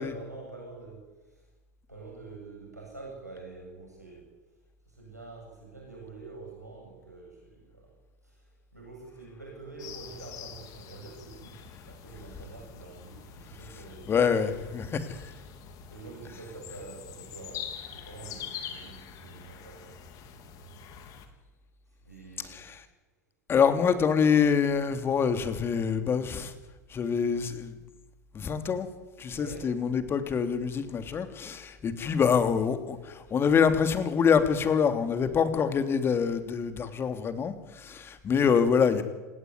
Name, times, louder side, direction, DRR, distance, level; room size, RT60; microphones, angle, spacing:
voice 1, 0.0-1.4 1.9-4.2 4.9-7.9 8.2-8.4 8.7-11.6 11.8-14.3 15.9-20.0 22.0-22.6 29.3-29.7, right 3 dB, 90° right, -1 dB, 7.9 m, -46 dB
sound 1, 9.8-21.3, left 8 dB, 45° left, 3.4 m, -45 dB
voice 2, 14.1-15.2 22.4-22.8 23.5-26.5 26.9-27.8 28.3-28.9 29.2-39.0, left 6 dB, 25° left, 9 dB, 3.1 m, -26 dB
28.0 x 18.0 x 9.7 m, 1.2 s
figure-of-eight pair, 80°, 9 cm